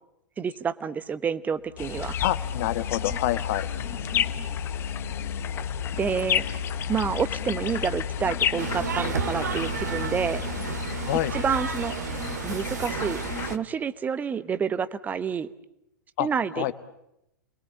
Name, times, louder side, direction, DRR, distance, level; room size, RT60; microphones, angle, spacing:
voice 1, 0.4-2.2 6.0-6.4 6.9-10.4 11.3-12.0 12.4-15.5 16.2-16.7, right 6 dB, 15° right, 15 dB, 1.1 m, -28 dB
sound 1, 1.6-13.4, left 6 dB, 70° left, 1.1 m, -35 dB
sound 2, 1.8-13.6, left 10 dB, 25° left, 1.1 m, -33 dB
voice 2, 2.2-3.7 11.0-11.3 16.2-16.3 16.6-16.7, left 15 dB, 45° left, 12 dB, 1.3 m, -27 dB
sound 3, 8.6-13.6, right 6 dB, 65° right, 2.0 m, -32 dB
29.5 x 21.5 x 8.8 m, 0.83 s
figure-of-eight pair, 105°, 10 cm